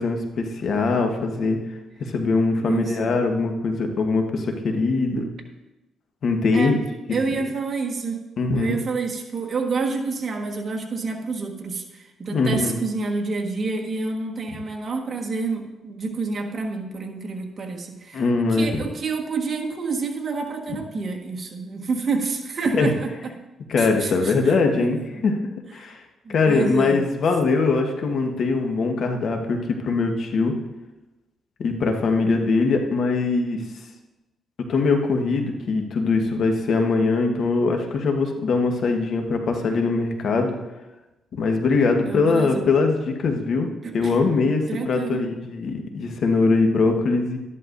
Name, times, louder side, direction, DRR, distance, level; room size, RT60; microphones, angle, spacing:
voice 1, 0.0-1.6 2.0-5.2 6.2-6.8 8.4-8.8 12.3-12.8 14.5-14.6 18.1-18.8 20.7-20.8 22.7-22.9 23.7-25.0 25.2-25.4 25.7-26.0 26.3-30.5 31.6-33.6 34.7-40.6 41.3-47.4, left 3 dB, 60° left, 4 dB, 1.3 m, -22 dB
voice 2, 2.6-3.1 5.1-5.3 6.5-6.8 7.1-8.2 8.5-18.2 18.5-23.1 23.8-25.3 26.2-27.1 42.0-42.6 43.8-44.1 44.7-45.2, right 4 dB, 40° right, 2 dB, 1.5 m, -28 dB
13.0 x 11.0 x 2.6 m, 1.0 s
cardioid pair, 90°, 0 cm